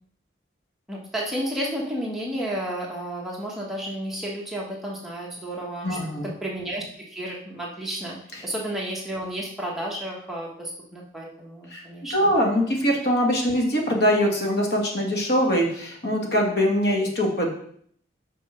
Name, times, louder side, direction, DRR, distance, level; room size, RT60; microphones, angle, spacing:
voice 1, 0.9-6.0 6.4-12.3, right 1 dB, ahead, -4 dB, 1.3 m, -32 dB
voice 2, 5.8-6.3 11.7-11.8 12.1-17.5, equal, 55° left, 0 dB, 1.8 m, -22 dB
6.1 x 5.9 x 5.6 m, 0.64 s
head